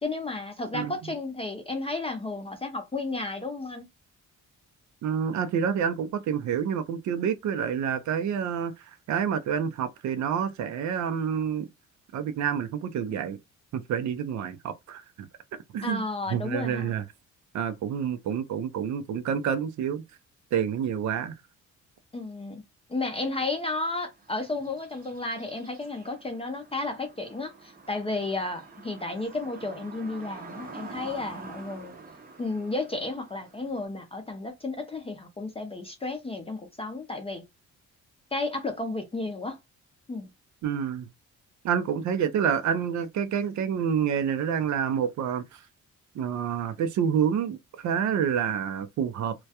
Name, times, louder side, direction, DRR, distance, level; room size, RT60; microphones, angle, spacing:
voice 1, 0.0-3.8 15.8-16.9 22.1-22.6 22.9-31.9 32.4-37.4 38.3-39.6 40.1-40.3, left 2 dB, 20° left, 0.5 m, -33 dB
voice 2, 5.0-11.7 12.1-13.4 13.7-15.3 15.7-16.0 16.3-17.0 17.5-20.0 20.5-21.3 40.6-41.1 41.6-45.6 46.1-49.3, right 8 dB, 70° right, 0.5 m, -28 dB
sound 1, 24.2-33.8, right 3 dB, 30° right, 0.6 m, -47 dB
2.3 x 2.1 x 2.7 m
cardioid pair, 105°, 30 cm